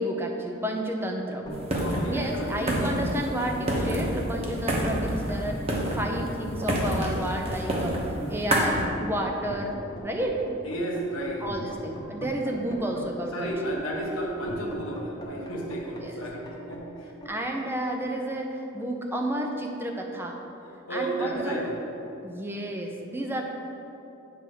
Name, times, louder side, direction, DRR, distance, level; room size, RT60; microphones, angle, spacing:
voice 1, 0.0-1.6 2.1-5.6 5.9-8.0 8.3-9.7 10.0-10.4 11.4-13.5 13.9-14.0 16.0-16.2 17.2-20.4 20.6-21.6 22.2-23.4, right 1 dB, 10° right, 1 dB, 0.5 m, -31 dB
sound 1, 1.4-18.2, equal, 20° left, 1.0 m, -39 dB
sound 2, 1.5-8.9, right 1 dB, 30° right, 1.0 m, -29 dB
voice 2, 1.7-2.8 10.6-11.5 13.3-17.1 20.9-21.8, right 1 dB, 85° left, -2 dB, 1.3 m, -32 dB
9.0 x 3.4 x 6.1 m, 2.9 s
head